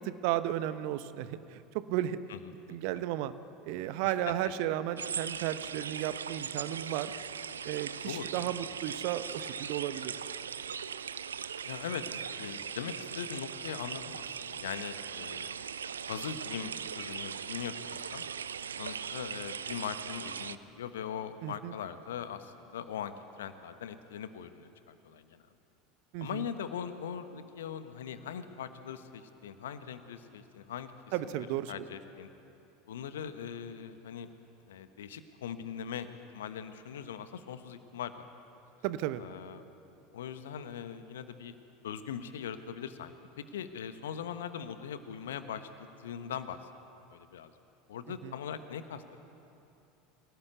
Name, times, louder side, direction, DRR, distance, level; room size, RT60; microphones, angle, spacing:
voice 1, 0.0-2.2 2.7-3.3 3.6-7.1 7.7-10.1 21.4-21.7 26.1-26.4 31.1-31.7 38.8-39.2 48.2-48.3, right 13 dB, 55° right, 13 dB, 0.9 m, -34 dB
voice 2, 4.0-4.4 8.0-8.5 11.6-15.6 16.0-18.2 18.7-25.4 26.2-30.9 31.2-32.3 32.9-34.3 34.7-36.1 36.3-38.1 39.2-39.6 40.1-41.5 41.8-43.1 43.5-46.6 47.1-47.5 47.9-49.0, left 8 dB, 70° left, 10 dB, 1.2 m, -41 dB
sound 1, 5.0-20.6, right 7 dB, 75° right, 0.5 m, -39 dB
25.5 x 17.5 x 8.1 m, 2.8 s
figure-of-eight pair, 75°, 0 cm